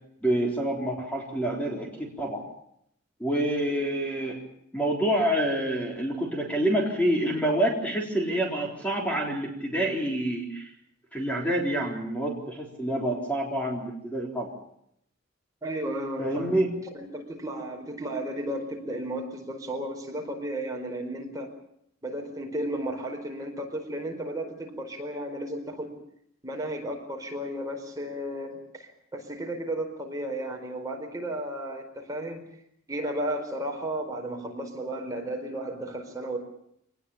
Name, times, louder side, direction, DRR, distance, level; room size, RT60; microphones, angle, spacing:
voice 1, 0.2-2.4 3.2-4.4 4.7-10.7 11.1-14.5 16.2-16.7, right 1 dB, 5° left, 0 dB, 3.8 m, -27 dB
voice 2, 15.6-16.5 16.9-21.5 22.0-26.0 26.4-32.4 32.9-36.4, right 1 dB, 15° right, 1 dB, 4.5 m, -34 dB
25.5 x 20.0 x 7.1 m, 0.73 s
head